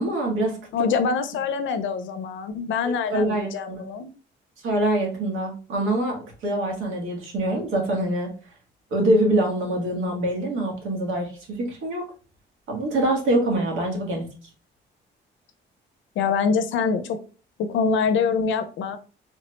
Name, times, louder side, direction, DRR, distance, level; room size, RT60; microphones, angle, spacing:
voice 1, 0.0-0.6 2.8-3.8 4.6-8.3 8.9-12.1 12.7-14.3, right 1 dB, 80° right, 0 dB, 1.1 m, -24 dB
voice 2, 0.7-4.1 16.2-17.2 17.6-19.0, left 5 dB, 75° left, 9 dB, 0.5 m, -24 dB
3.2 x 2.1 x 3.0 m, 0.36 s
cardioid pair, 90°, 20 cm